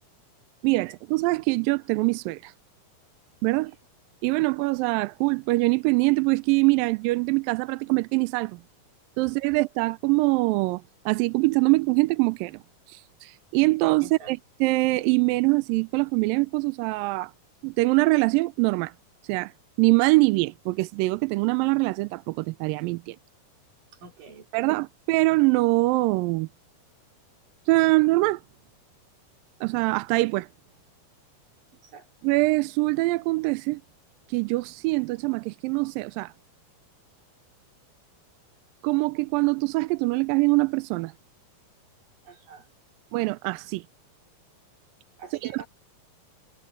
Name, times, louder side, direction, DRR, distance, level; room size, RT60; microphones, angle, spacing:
voice 1, 0.6-2.5 3.4-3.7 4.2-8.6 9.2-12.6 12.9-17.3 17.6-18.9 19.3-19.5 19.8-23.2 24.5-26.5 27.7-28.4 29.6-30.5 32.2-33.8 34.3-36.3 38.8-41.1 43.1-43.8 45.4-45.6, right 24 dB, 80° right, 2.1 m, -23 dB
voice 2, 14.0-14.3 24.0-24.5 31.9-32.1 42.3-42.7 45.2-45.7, right 6 dB, 60° right, 5.2 m, -44 dB
omnidirectional pair, 4.4 m